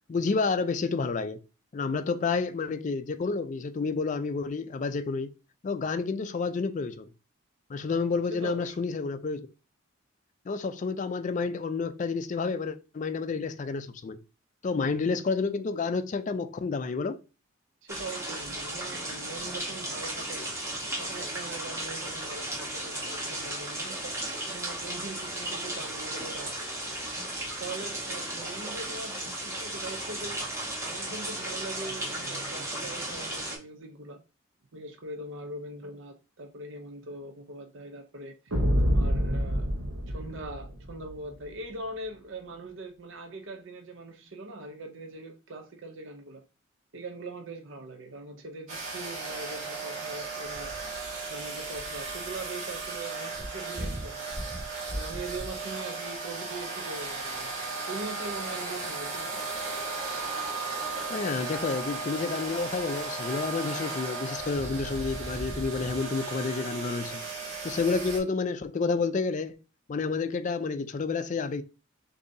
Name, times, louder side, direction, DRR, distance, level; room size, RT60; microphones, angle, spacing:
voice 1, 0.1-1.4 1.7-5.3 5.6-7.1 7.7-9.5 10.5-14.2 14.6-17.2 61.1-67.2 67.6-69.6 69.9-71.6, left 4 dB, 35° left, 0.3 m, -30 dB
voice 2, 8.3-8.8 17.8-24.1 24.5-26.7 27.6-30.4 30.8-34.2 34.7-38.5 38.8-39.7 40.1-46.4 46.9-50.7 51.3-54.2 54.9-57.5 57.9-59.4, right 2 dB, 60° right, 0.6 m, -41 dB
sound 1, 17.9-33.6, right 1 dB, 15° right, 1.1 m, -35 dB
sound 2, 38.5-41.1, equal, 90° right, 0.9 m, -27 dB
sound 3, 48.7-68.2, right 3 dB, 35° right, 2.0 m, -35 dB
6.6 x 2.7 x 2.6 m
head